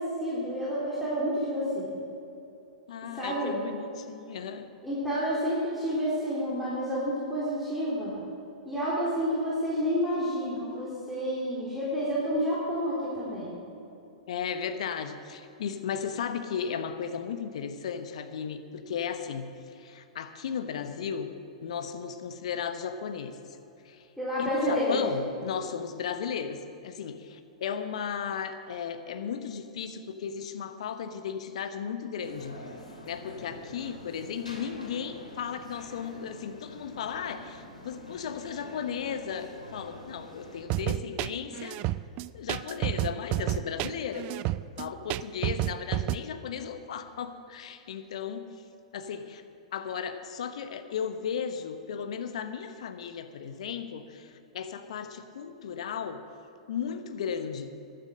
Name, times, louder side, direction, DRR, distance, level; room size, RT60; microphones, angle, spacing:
voice 1, 0.0-1.9 3.1-3.6 4.8-8.2 8.7-13.5 24.2-25.0, equal, ahead, -9 dB, 3.6 m, -29 dB
voice 2, 2.9-4.7 14.3-23.4 23.8-24.1 24.4-32.7 33.0-41.8 42.3-44.3 44.8-48.4 48.9-49.4 49.7-56.2 56.7-57.7, left 7 dB, 60° left, 9 dB, 1.1 m, -35 dB
sound 1, 32.2-40.6, left 1 dB, 90° left, 2.7 m, -46 dB
sound 2, 40.7-46.2, right 16 dB, 35° right, 0.4 m, -30 dB
15.0 x 10.5 x 6.5 m, 2.7 s
figure-of-eight pair, 105°, 4 cm